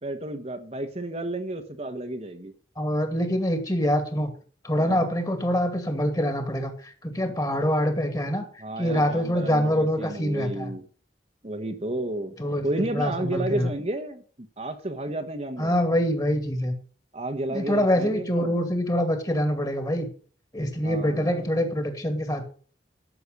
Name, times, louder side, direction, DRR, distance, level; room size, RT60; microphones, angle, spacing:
voice 1, 0.0-2.5 4.8-5.1 8.6-10.9 11.4-12.3 12.6-15.8 17.1-18.6 20.8-21.5, right 1 dB, 35° right, 6 dB, 1.2 m, -32 dB
voice 2, 2.8-4.3 4.6-6.7 7.0-8.4 8.8-10.7 12.4-12.7 12.9-13.7 15.6-16.7 17.5-20.1 20.5-22.5, equal, 20° left, 6 dB, 2.3 m, -25 dB
13.0 x 6.7 x 6.7 m, 0.43 s
head